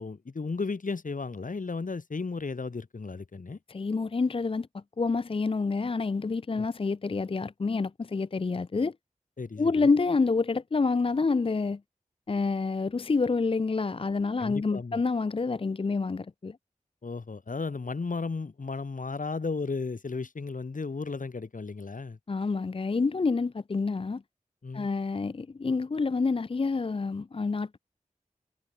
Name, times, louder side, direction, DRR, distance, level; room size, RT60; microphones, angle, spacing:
voice 1, 0.0-3.6 6.5-6.7 9.4-9.9 14.4-15.0 17.0-22.2 24.6-24.9, left 4 dB, 75° left, 3.3 m, -34 dB
voice 2, 3.7-8.9 9.6-11.8 12.3-16.6 22.3-24.2 24.7-27.8, left 4 dB, 40° left, 0.5 m, -28 dB
wide cardioid pair, 65°, 14 cm